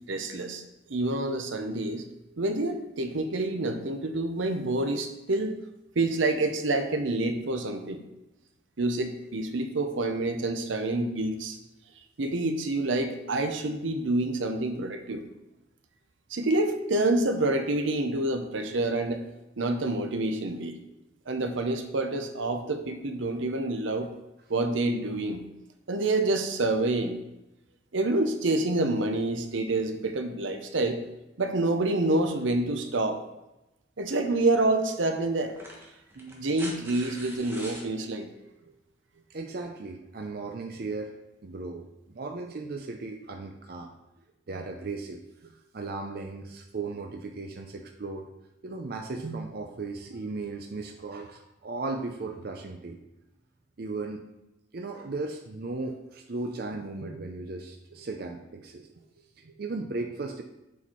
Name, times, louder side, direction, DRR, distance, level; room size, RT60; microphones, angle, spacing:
voice 1, 0.1-0.6 0.9-2.0 2.4-5.5 5.9-8.0 8.8-11.6 12.2-15.2 16.3-19.2 19.6-20.8 21.3-24.1 24.5-25.5 25.9-27.2 27.9-31.0 31.4-33.2 34.0-35.6 36.2-38.3, right 2 dB, 80° right, 6 dB, 0.8 m, -27 dB
sound 1, 34.3-34.4 35.4-37.9 39.4-39.5, right 1 dB, 10° right, 1.1 m, -43 dB
voice 2, 39.3-41.1 41.4-43.9 44.5-48.3 48.6-53.0 53.8-54.2 54.7-58.9 59.1-60.4, right 3 dB, 50° right, 3 dB, 0.5 m, -36 dB
7.1 x 4.3 x 4.4 m, 0.94 s
head